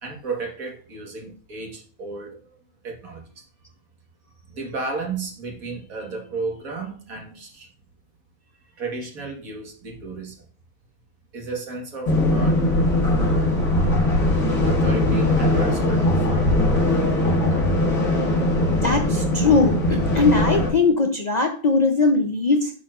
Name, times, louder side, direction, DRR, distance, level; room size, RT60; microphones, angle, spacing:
voice 1, 0.0-2.5 2.8-3.4 4.5-7.7 8.8-10.4 11.3-12.7 14.7-17.1 17.5-17.7, right 3 dB, 75° right, 1 dB, 2.0 m, -33 dB
sound 1, 12.1-20.7, left 1 dB, 75° left, 2.1 m, -20 dB
voice 2, 18.7-22.7, left 3 dB, 45° left, 4 dB, 0.5 m, -20 dB
8.0 x 6.3 x 2.5 m, 0.42 s
omnidirectional pair, 1.5 m